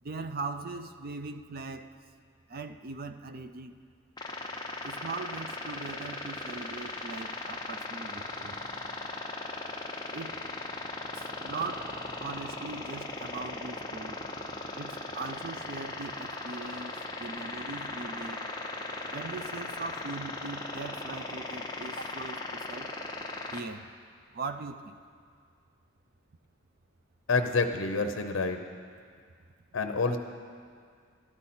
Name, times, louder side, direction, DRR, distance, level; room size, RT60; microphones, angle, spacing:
voice 1, 0.0-1.9 2.5-3.8 4.8-8.6 10.1-10.4 11.1-14.2 14.7-18.4 19.1-22.9 23.5-23.9 24.3-24.9, right 3 dB, 50° right, 10 dB, 0.5 m, -40 dB
sound 1, 4.2-23.6, left 2 dB, 20° left, 0.7 m, -38 dB
voice 2, 27.3-28.6 29.7-30.2, left 4 dB, 70° left, 6 dB, 0.7 m, -27 dB
13.0 x 11.5 x 4.3 m, 2.1 s
head